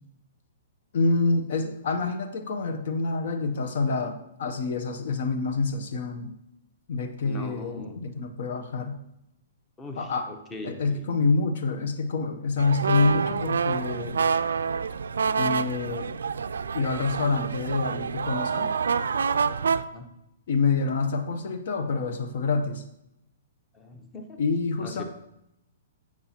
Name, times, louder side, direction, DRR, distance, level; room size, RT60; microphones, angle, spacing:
voice 1, 0.9-6.3 6.9-9.0 10.0-10.3 10.6-14.2 15.4-16.2 16.7-18.7 20.5-22.8 24.4-25.0, left 3 dB, 60° left, 7 dB, 0.7 m, -27 dB
voice 2, 7.2-8.0 9.8-11.1 19.8-20.1 23.7-24.4 24.8-25.0, left 2 dB, 15° left, 5 dB, 0.9 m, -40 dB
sound 1, 12.6-19.8, right 6 dB, 80° right, 0.3 m, -27 dB
8.6 x 6.0 x 2.8 m, 0.82 s
hypercardioid pair, 130°, 0 cm